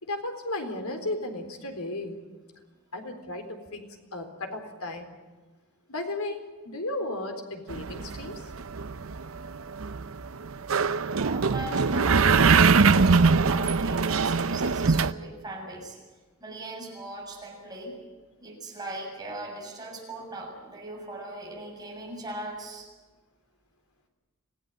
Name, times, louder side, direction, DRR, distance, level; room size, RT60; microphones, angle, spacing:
voice 1, 0.0-2.2 2.9-3.8 4.1-5.1 5.9-8.5, left 2 dB, 85° left, 5 dB, 4.0 m, -34 dB
sound 1, 7.7-15.1, right 4 dB, 70° right, 0.7 m, -22 dB
voice 2, 11.1-16.0 16.4-18.0 18.4-22.9, right 2 dB, 20° right, -1 dB, 7.3 m, -39 dB
27.0 x 16.5 x 9.1 m, 1.3 s
head